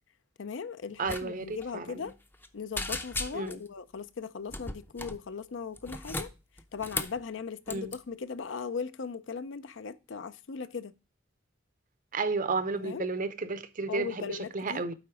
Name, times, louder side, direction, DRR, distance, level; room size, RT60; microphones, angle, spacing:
voice 1, 0.4-2.1 2.5-6.3 6.7-10.9 12.7-13.1 13.9-14.9, left 5 dB, 65° left, 0.5 m, -38 dB
voice 2, 1.0-1.9 3.3-3.6 7.7-7.9 12.1-14.9, right 4 dB, 45° right, 0.7 m, -32 dB
sound 1, 1.1-1.2 1.5-1.7 2.1-2.5 2.8-3.7 4.5-5.2 5.8-7.2 7.7-8.0, left 2 dB, 10° left, 0.6 m, -36 dB
9.2 x 4.0 x 4.8 m
head